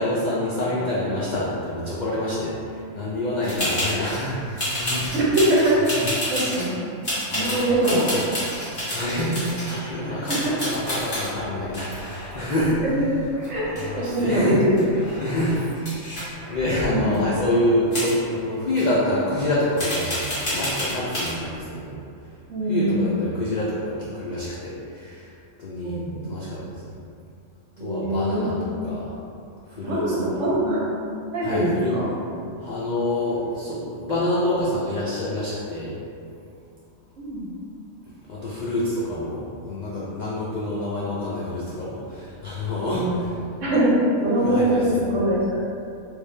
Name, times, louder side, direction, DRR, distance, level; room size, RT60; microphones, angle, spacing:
voice 1, 0.0-5.2 5.8-6.1 7.3-8.3 8.6-12.8 13.7-14.6 15.2-22.3 22.7-26.9 27.8-28.6 28.8-29.2 29.7-30.5 31.4-32.0 32.6-35.9 38.3-43.4 44.4-45.0, left 1 dB, 65° left, -8 dB, 0.4 m, -27 dB
sound 1, 3.4-4.3 4.6-6.7 7.0-9.8 10.3-11.3 11.7-13.2 13.4-14.2 14.5-14.6 14.8-16.3 17.1-17.2 17.9-18.2 18.8-18.9 19.8-21.3, equal, 40° left, 1.5 m, -29 dB
voice 2, 5.3-5.8 6.3-6.8 7.3-8.2 9.3-9.5 10.3-10.6 13.0-13.1 13.5-14.8 16.9-17.1 22.5-23.1 25.8-26.2 27.8-28.9 29.8-30.9 31.3-32.1 37.2-37.5 42.8-43.2 43.6-45.6, right 1 dB, 70° right, -7 dB, 1.2 m, -23 dB
sound 2, 10.3-11.1 11.8-12.7 13.3-14.2 14.8-15.7 16.4-16.8, left 1 dB, 5° left, 1.0 m, -43 dB
3.3 x 2.6 x 3.2 m, 2.5 s
omnidirectional pair, 1.4 m